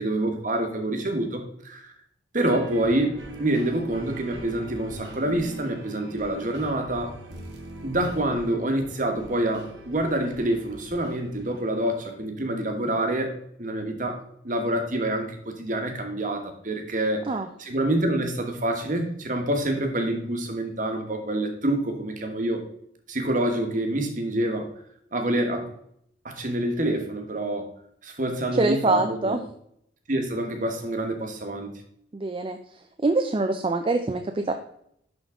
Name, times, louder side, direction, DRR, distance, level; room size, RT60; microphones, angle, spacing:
voice 1, 0.0-1.9 2.3-3.1 3.4-7.2 7.8-13.3 13.6-22.6 23.1-24.7 25.1-25.7 26.2-27.7 28.0-29.4 30.1-31.7, right 1 dB, 45° right, 4 dB, 1.2 m, -27 dB
sound 1, 2.5-12.1, right 1 dB, 75° right, 1.4 m, -42 dB
voice 2, 28.6-29.4 32.1-32.6 33.0-34.5, right 2 dB, 30° right, 5 dB, 0.4 m, -24 dB
11.0 x 3.8 x 3.6 m, 0.70 s
head